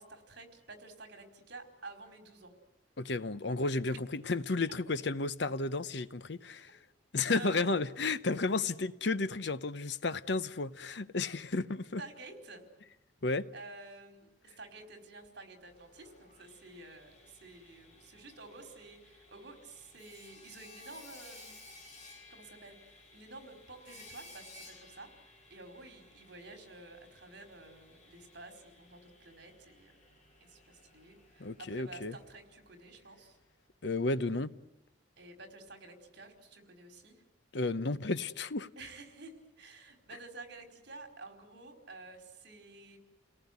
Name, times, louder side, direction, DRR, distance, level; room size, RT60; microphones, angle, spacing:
voice 1, 0.0-2.5 7.3-7.7 12.0-12.6 13.5-21.6 22.3-25.1 25.5-29.9 30.4-33.4 35.2-37.2 38.8-43.0, right 2 dB, 60° right, 4.8 m, -51 dB
voice 2, 3.0-6.8 7.1-12.0 13.2-13.5 31.4-32.2 33.8-34.5 37.5-38.7, left 3 dB, 60° left, 0.8 m, -32 dB
Sawing, 15.6-33.4, left 2 dB, 40° left, 5.4 m, -57 dB
30.0 x 18.5 x 9.6 m
head